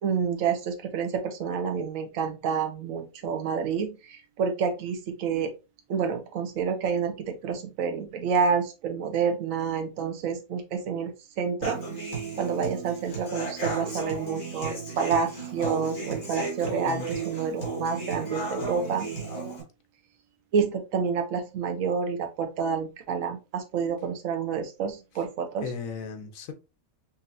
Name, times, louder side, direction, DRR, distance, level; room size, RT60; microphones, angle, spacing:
voice 1, 0.0-5.5 5.9-11.8 12.0-19.1 20.5-25.7, right 6 dB, 70° right, 1.1 m, -29 dB
Human voice / Acoustic guitar, 11.6-19.6, right 3 dB, 50° left, 1.8 m, -34 dB
voice 2, 16.7-17.1 25.6-26.5, left 6 dB, 75° left, 1.1 m, -36 dB
5.3 x 2.7 x 2.6 m
omnidirectional pair, 1.5 m